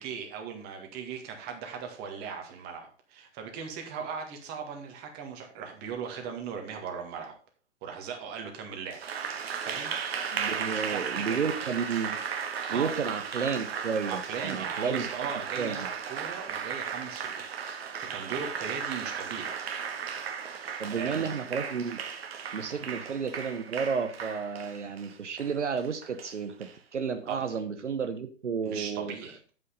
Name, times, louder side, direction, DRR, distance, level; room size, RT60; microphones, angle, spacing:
voice 1, 0.0-7.3 7.8-9.0 9.6-9.9 10.3-11.4 12.7-13.0 14.1-15.8 16.1-17.6 18.0-19.5 20.6-21.2 22.7-22.9 27.3-27.5 28.6-29.4, right 6 dB, 25° right, 4 dB, 1.9 m, -38 dB
Applause, 8.9-26.7, right 7 dB, 55° right, 1.3 m, -36 dB
voice 2, 10.3-12.2 12.7-15.1 15.6-15.9 20.8-22.0 22.5-29.1, right 6 dB, 75° right, 8 dB, 1.0 m, -32 dB
8.2 x 5.7 x 5.3 m, 0.40 s
figure-of-eight pair, 120°, 36 cm